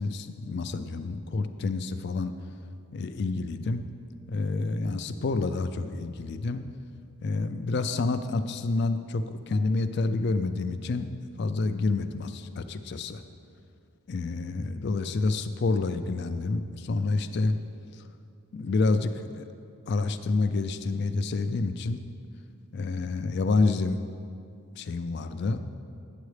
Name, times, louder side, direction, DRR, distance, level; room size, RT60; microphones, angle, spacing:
voice 1, 0.0-2.3 2.9-3.8 4.3-6.6 7.2-13.2 14.1-17.6 18.5-19.4 19.9-22.0 22.7-24.0 24.8-25.6, left 3 dB, 50° left, 10 dB, 0.3 m, -28 dB
9.3 x 7.9 x 3.2 m, 2.5 s
head